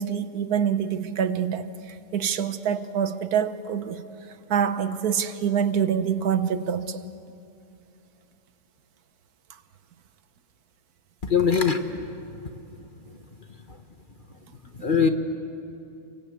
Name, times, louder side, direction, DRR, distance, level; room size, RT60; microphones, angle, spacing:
voice 1, 0.0-4.0 4.5-7.0, right 8 dB, 80° right, 1.5 m, -26 dB
voice 2, 11.2-11.8 14.8-15.1, left 6 dB, 35° left, 1.3 m, -20 dB
29.5 x 24.5 x 8.3 m
omnidirectional pair, 1.6 m